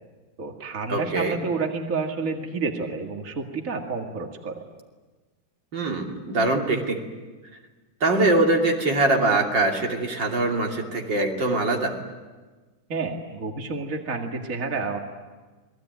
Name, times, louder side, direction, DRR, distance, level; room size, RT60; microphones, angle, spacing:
voice 1, 0.4-4.6 12.9-15.0, right 4 dB, 50° right, 3 dB, 2.4 m, -29 dB
voice 2, 0.9-1.4 5.7-7.0 8.0-12.0, right 2 dB, 85° right, 1 dB, 3.6 m, -23 dB
28.0 x 20.5 x 9.3 m, 1.3 s
omnidirectional pair, 1.9 m